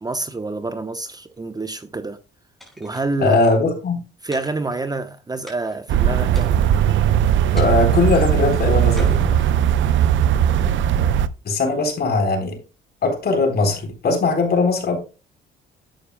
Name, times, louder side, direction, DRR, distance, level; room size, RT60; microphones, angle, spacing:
voice 1, 0.0-2.2 2.8-3.4 4.2-6.6 10.5-10.8, right 3 dB, 20° right, 0.9 m, -27 dB
sound 1, 2.6-3.5 4.3-5.1 5.5-5.9 6.3-6.9 7.6-8.1 9.0-9.9, left 1 dB, ahead, 5.8 m, -44 dB
voice 2, 3.2-4.0 7.5-9.4 11.4-12.6 13.0-15.0, left 3 dB, 55° left, 4.0 m, -20 dB
sound 2, 5.9-11.3, right 9 dB, 75° right, 0.7 m, -18 dB
11.5 x 8.5 x 2.2 m
cardioid pair, 90°, 20 cm